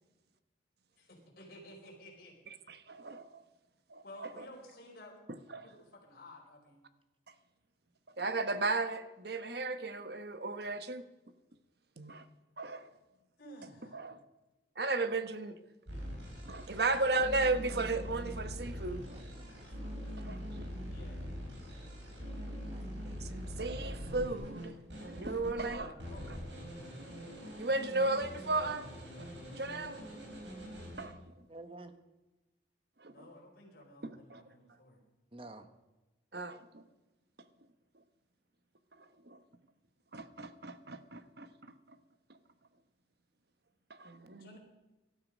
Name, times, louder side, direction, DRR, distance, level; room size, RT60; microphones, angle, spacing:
voice 1, 1.0-2.4 4.0-5.2 5.5-6.8 13.4-14.0 20.0-20.1 20.9-21.2 25.5-26.7 33.1-35.0 44.4-44.6, left 1 dB, 55° left, 4.8 m, -53 dB
voice 2, 2.7-3.4 3.9-4.4 5.5-5.7 8.2-11.0 12.0-12.2 12.6-12.9 13.9-14.2 14.8-15.6 16.4-19.2 20.2-20.7 23.0-25.9 27.6-29.2 29.5-30.0 31.0-31.5 33.0-33.3 34.0-34.4 36.3-36.8 38.9-39.4 40.1-41.7 43.9-44.6, right 3 dB, 60° right, 1.0 m, -35 dB
sound 1, 15.9-25.7 26.0-31.0, equal, 75° right, 5.4 m, -43 dB
voice 3, 19.0-20.0 22.7-23.2 31.5-32.0 35.3-35.7, right 2 dB, 30° right, 1.1 m, -51 dB
18.5 x 12.5 x 5.2 m
head